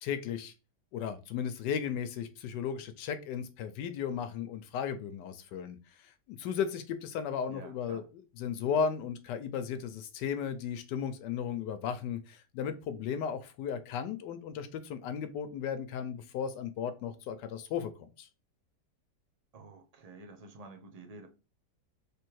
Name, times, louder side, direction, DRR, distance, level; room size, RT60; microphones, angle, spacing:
voice 1, 0.0-0.5 0.9-5.8 6.0-8.0 8.4-17.9 18.2-18.3, left 7 dB, 85° left, 1.2 m, -35 dB
voice 2, 7.5-8.1 19.5-21.3, right 3 dB, 70° right, 0.3 m, -50 dB
3.4 x 3.3 x 4.5 m
omnidirectional pair, 1.8 m